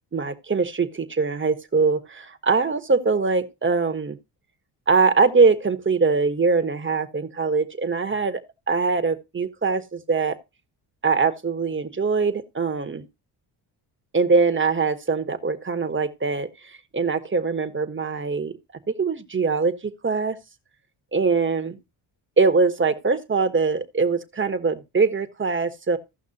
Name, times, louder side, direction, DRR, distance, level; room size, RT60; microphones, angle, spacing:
voice 1, 0.1-4.2 4.9-8.4 8.7-10.4 11.0-13.1 14.1-18.5 18.9-20.4 21.1-21.8 22.4-26.0, right 4 dB, 25° right, 1.2 m, -22 dB
16.0 x 5.9 x 2.8 m
cardioid pair, 80°, 46 cm